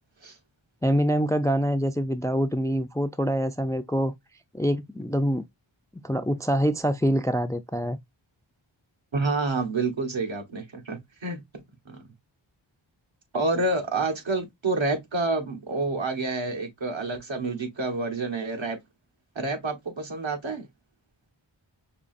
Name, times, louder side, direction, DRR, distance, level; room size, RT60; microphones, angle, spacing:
voice 1, 0.8-4.1 4.5-5.4 6.0-8.0, equal, 5° left, 0.3 m, -25 dB
voice 2, 9.1-11.4 11.9-12.1 13.3-18.8 19.3-20.7, right 3 dB, 70° right, 1.4 m, -28 dB
5.2 x 2.8 x 2.5 m
wide cardioid pair, 45°, 48 cm